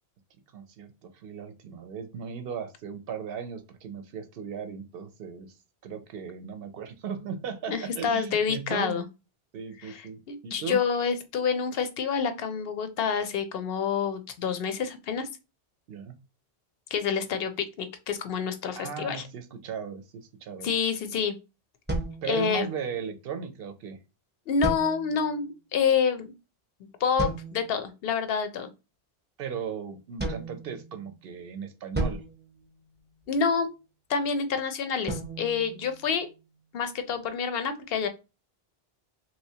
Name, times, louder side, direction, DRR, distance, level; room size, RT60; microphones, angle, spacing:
voice 1, 0.5-5.5 5.8-9.0 9.5-10.8 15.9-16.1 18.7-20.7 22.2-24.0 29.4-32.2, right 6 dB, 65° right, 8 dB, 0.7 m, -37 dB
voice 2, 7.7-9.0 9.8-15.3 16.9-19.2 20.6-21.3 22.3-22.7 24.5-26.3 27.0-28.7 33.3-33.7 34.1-36.3 36.7-38.1, left 6 dB, 70° left, 9 dB, 0.7 m, -28 dB
sound 1, 21.9-23.0 24.6-25.4 27.2-27.8 30.2-31.3 31.9-33.4 35.1-36.6, right 2 dB, 15° right, 0.5 m, -35 dB
3.3 x 2.8 x 2.7 m, 0.28 s
omnidirectional pair, 1.1 m